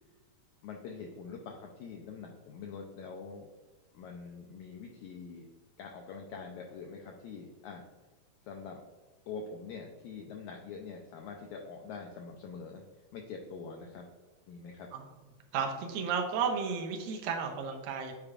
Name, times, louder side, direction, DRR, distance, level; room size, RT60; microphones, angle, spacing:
voice 1, 0.6-3.5 3.9-5.5 5.8-7.8 8.5-8.8 9.3-12.8 13.1-14.1 14.5-14.9, left 5 dB, 85° left, 2 dB, 1.6 m, -44 dB
voice 2, 15.5-18.1, right 6 dB, 85° right, 3 dB, 2.5 m, -33 dB
8.5 x 4.6 x 2.4 m, 1.3 s
omnidirectional pair, 4.0 m